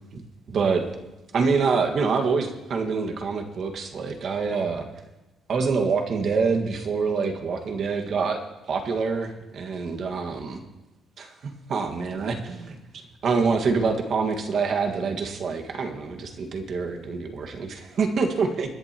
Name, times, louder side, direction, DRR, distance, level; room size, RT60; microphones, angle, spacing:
voice 1, 0.5-0.9 1.3-4.9 5.5-8.4 8.7-10.6 11.2-11.3 11.7-18.7, right 5 dB, 55° right, 4 dB, 1.7 m, -26 dB
25.0 x 11.0 x 3.0 m, 1.0 s
cardioid pair, 120°, 0 cm